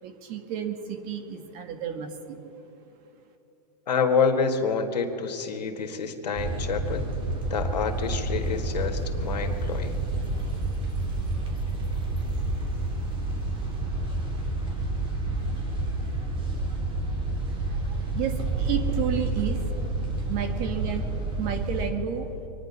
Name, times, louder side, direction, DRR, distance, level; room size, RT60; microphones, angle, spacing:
voice 1, 0.0-2.4 17.4-19.6 20.0-22.3, right 9 dB, 40° right, 7 dB, 1.8 m, -32 dB
voice 2, 3.9-7.0 7.5-10.0, left 5 dB, 85° left, 6 dB, 1.7 m, -27 dB
sound 1, 6.3-21.9, right 2 dB, 25° right, 3.4 m, -29 dB
24.5 x 10.5 x 5.5 m, 3.0 s
hypercardioid pair, 130°, 21 cm